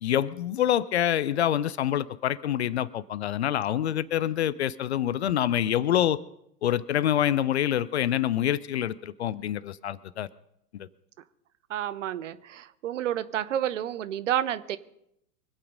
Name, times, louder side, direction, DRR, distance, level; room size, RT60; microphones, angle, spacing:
voice 1, 0.0-6.2 6.6-10.3 10.7-10.9, left 11 dB, 45° left, 20 dB, 0.5 m, -26 dB
voice 2, 11.7-14.8, right 11 dB, 50° right, 16 dB, 0.8 m, -30 dB
24.5 x 8.6 x 5.2 m, 0.77 s
figure-of-eight pair, 105°, 47 cm